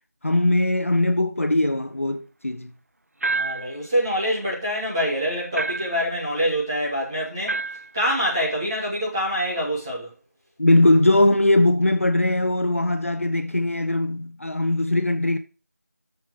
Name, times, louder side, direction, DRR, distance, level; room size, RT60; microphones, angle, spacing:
voice 1, 0.2-2.7 10.6-15.4, left 1 dB, 55° left, 1.0 m, -20 dB
sound 1, 3.2-3.8 5.5-6.1 7.5-7.9, right 3 dB, 65° right, 0.5 m, -27 dB
voice 2, 3.3-7.6 7.9-10.1, equal, 15° right, 2.6 m, -25 dB
7.3 x 7.1 x 6.1 m
figure-of-eight pair, 175°, 9 cm